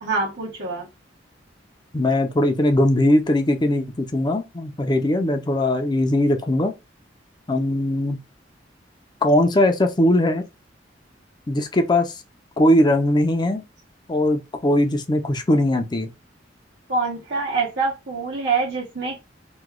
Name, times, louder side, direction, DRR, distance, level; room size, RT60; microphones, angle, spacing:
voice 1, 0.0-0.9 16.9-19.2, right 4 dB, 80° right, 1.3 m, -25 dB
voice 2, 1.9-6.7 7.5-8.2 9.2-10.4 11.5-12.1 12.6-13.6 14.1-16.1, left 1 dB, 25° left, 0.5 m, -20 dB
3.0 x 2.2 x 3.6 m
head